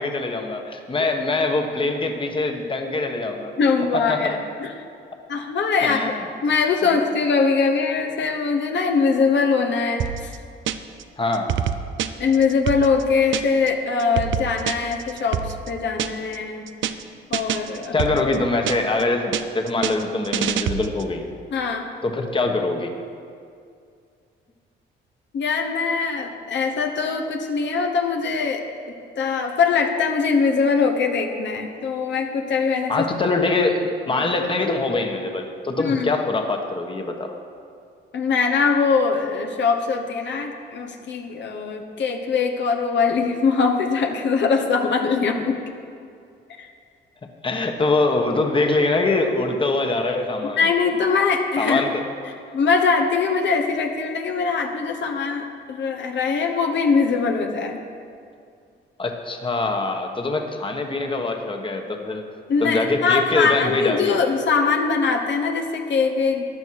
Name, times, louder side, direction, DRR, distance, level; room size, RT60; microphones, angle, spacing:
voice 1, 0.0-3.5 4.1-4.4 5.8-6.2 6.8-7.0 11.2-11.5 17.9-21.2 22.0-22.9 32.9-37.3 47.4-50.6 51.6-52.0 59.0-62.2 62.6-64.2, left 3 dB, 25° left, 3 dB, 1.3 m, -23 dB
voice 2, 3.6-4.7 5.3-6.1 6.4-10.4 12.2-16.7 17.3-17.9 21.5-21.9 25.3-28.6 29.2-33.1 34.1-34.2 35.8-36.1 38.1-45.6 46.6-46.7 50.6-51.8 52.5-57.8 62.5-66.4, left 5 dB, 65° left, 3 dB, 1.2 m, -22 dB
sound 1, 10.0-11.0 11.3-13.7 14.0-16.4 16.7-17.0 17.3-19.0 19.3-21.1, right 10 dB, 75° right, 0.6 m, -27 dB
14.5 x 10.5 x 4.8 m, 2.3 s
cardioid pair, 90°, 20 cm